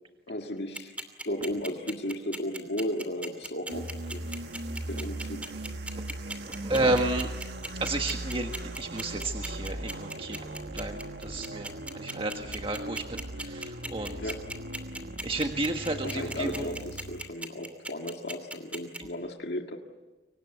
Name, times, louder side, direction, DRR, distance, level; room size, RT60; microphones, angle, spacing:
voice 1, 0.3-0.9 1.2-4.3 4.9-5.5 14.2-14.5 16.0-19.8, left 1 dB, 70° left, 2 dB, 1.9 m, -35 dB
sound 1, 0.7-19.0, right 1 dB, 10° right, 2.7 m, -37 dB
sound 2, 3.7-17.3, right 1 dB, 80° right, 1.5 m, -39 dB
voice 2, 6.6-7.3 7.8-8.5 8.8-10.4 10.7-13.2 13.5-14.2 15.2-16.5, right 2 dB, 30° right, 4 dB, 1.6 m, -31 dB
30.0 x 24.5 x 8.1 m, 1.2 s
head